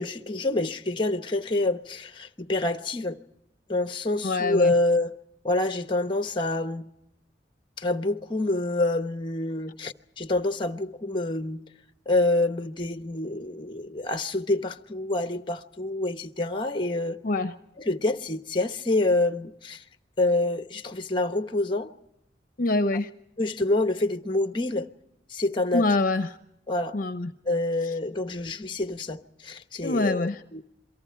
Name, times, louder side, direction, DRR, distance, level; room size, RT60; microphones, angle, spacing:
voice 1, 0.0-3.2 3.7-5.2 5.4-6.9 7.8-11.6 12.1-17.2 17.8-19.8 20.2-21.9 23.4-24.9 25.3-25.9 26.7-27.0 27.5-30.6, left 2 dB, 25° left, 1.1 m, -27 dB
voice 2, 4.2-4.7 17.2-17.5 22.6-23.1 25.7-26.3 26.9-27.3 29.8-30.4, left 2 dB, 50° left, 0.8 m, -25 dB
28.5 x 23.0 x 4.6 m
head